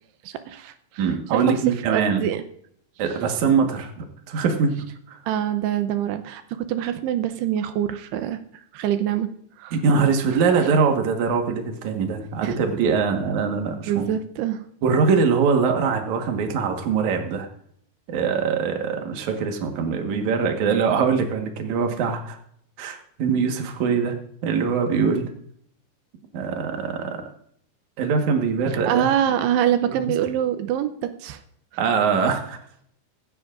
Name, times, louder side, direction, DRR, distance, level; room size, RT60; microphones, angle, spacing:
voice 1, 0.2-1.4 1.9-2.4 5.3-6.4 6.7-8.4 8.7-9.3 9.6-9.8 10.3-10.4 12.4-12.6 13.9-14.6 28.9-31.4, right 10 dB, 85° right, 9 dB, 2.8 m, -25 dB
voice 2, 1.0-2.2 3.0-5.2 9.7-14.1 14.8-17.5 18.1-22.4 22.8-24.2 24.4-25.3 26.3-27.2 28.0-29.1 29.9-30.1 31.8-32.6, right 5 dB, 60° right, 3 dB, 2.4 m, -22 dB
17.5 x 15.5 x 2.5 m, 0.67 s
omnidirectional pair, 4.7 m